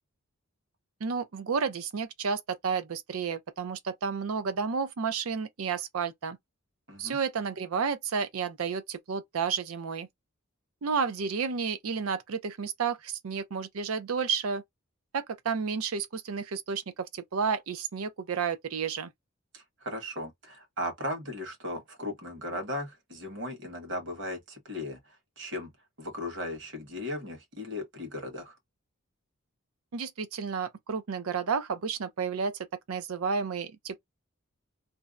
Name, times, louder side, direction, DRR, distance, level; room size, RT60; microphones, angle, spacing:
voice 1, 1.0-6.4 7.0-10.1 10.8-14.6 15.1-19.1 29.9-32.6 32.9-34.0, right 5 dB, 85° right, 0.5 m, -31 dB
voice 2, 19.5-25.7 26.0-28.6, left 1 dB, 55° right, 1.1 m, -37 dB
2.6 x 2.1 x 2.3 m
head